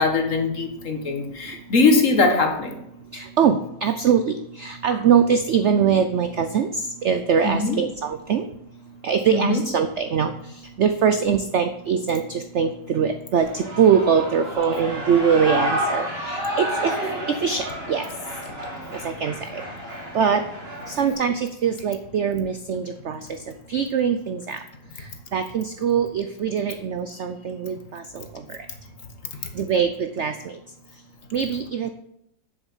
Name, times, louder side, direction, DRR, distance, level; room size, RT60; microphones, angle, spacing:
voice 1, 0.0-2.8 4.9-5.0 7.4-7.8 9.3-9.6, left 3 dB, 45° left, 4 dB, 1.7 m, -21 dB
voice 2, 3.1-6.7 7.0-8.4 9.0-10.3 10.8-16.9 17.4-18.1 19.0-19.6 20.1-20.4 20.9-23.2 23.7-24.6 25.3-28.2 28.5-28.6 29.5-30.5 31.3-31.9, right 7 dB, 75° right, 9 dB, 0.6 m, -22 dB
Shout / Cheering, 13.4-21.1, equal, 35° right, 2.5 m, -30 dB
7.8 x 7.2 x 7.2 m, 0.78 s
omnidirectional pair, 1.9 m